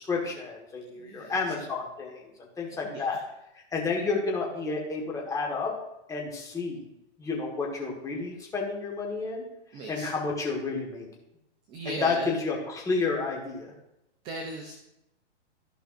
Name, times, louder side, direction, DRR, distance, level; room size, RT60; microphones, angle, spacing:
voice 1, 0.0-2.3 2.6-3.2 3.7-5.7 6.1-6.8 7.2-9.4 9.9-11.1 11.8-13.7, left 4 dB, 10° left, -1 dB, 1.4 m, -30 dB
voice 2, 1.0-1.3 2.8-3.0 9.7-10.1 11.7-12.3 14.2-14.7, right 2 dB, 15° right, 3 dB, 0.4 m, -37 dB
14.0 x 5.6 x 2.5 m, 0.88 s
hypercardioid pair, 150°, 35 cm